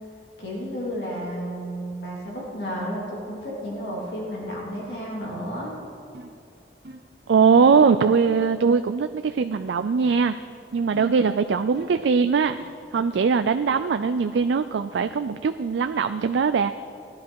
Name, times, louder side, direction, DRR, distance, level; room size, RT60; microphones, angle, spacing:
voice 1, 0.4-5.8, equal, 70° left, -5 dB, 3.3 m, -32 dB
sound 1, 6.1-6.4 6.8-7.2 7.6-7.9 8.3-8.7 10.0-10.4 10.9-11.3 11.7-12.1 12.6-12.9, right 1 dB, 60° right, 0.9 m, -43 dB
voice 2, 7.3-10.3 10.7-12.6 12.9-16.7, right 5 dB, 90° right, 9 dB, 0.4 m, -21 dB
18.0 x 11.0 x 4.7 m, 2.5 s
head